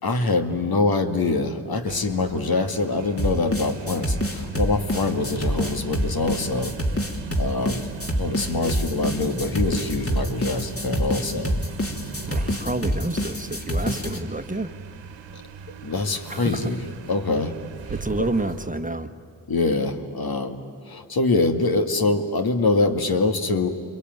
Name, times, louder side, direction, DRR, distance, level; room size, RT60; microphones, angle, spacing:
voice 1, 0.0-6.8 7.4-7.9 8.2-11.5 15.3-15.4 15.8-17.6 18.2-18.3 19.5-20.6 20.9-23.7, left 3 dB, 55° left, 6 dB, 2.1 m, -24 dB
sound 1, 1.7-18.9, right 6 dB, 80° right, 1.7 m, -38 dB
sound 2, 3.2-14.2, equal, 30° left, 3.2 m, -26 dB
voice 2, 12.3-14.7 16.3-16.7 17.9-19.1, right 2 dB, 20° right, 7 dB, 1.4 m, -29 dB
28.5 x 21.5 x 9.5 m, 2.3 s
supercardioid pair, 50°, 44 cm